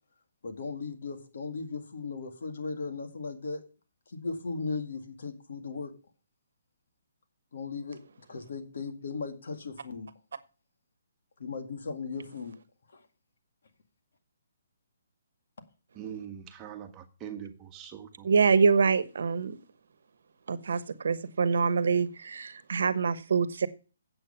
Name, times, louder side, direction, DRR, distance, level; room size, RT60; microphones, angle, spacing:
voice 1, 0.4-3.6 4.1-5.9 7.5-8.0 8.3-10.1 11.4-12.5 12.9-13.0, left 4 dB, 70° left, 2.0 m, -37 dB
voice 2, 16.0-18.3, right 9 dB, 20° right, 1.4 m, -42 dB
voice 3, 18.2-19.5 20.5-23.7, right 5 dB, 70° right, 1.1 m, -25 dB
8.5 x 7.8 x 5.6 m
hypercardioid pair, 150°, 0 cm